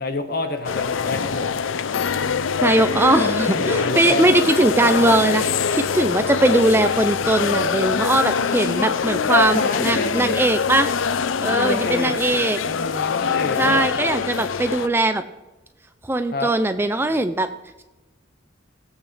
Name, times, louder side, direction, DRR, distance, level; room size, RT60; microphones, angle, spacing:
voice 1, 0.0-1.6 3.5-4.3 8.1-9.0 9.2-10.5 11.5-12.2 12.6-13.8 16.3-16.5, left 2 dB, 50° left, 6 dB, 1.3 m, -27 dB
sound 1, 0.6-14.9, left 6 dB, 85° left, 0.5 m, -24 dB
voice 2, 2.6-5.4 5.7-10.9 11.4-12.6 13.6-15.2 16.0-17.5, right 2 dB, 10° right, 10 dB, 0.4 m, -20 dB
17.5 x 8.3 x 3.3 m, 1.1 s
head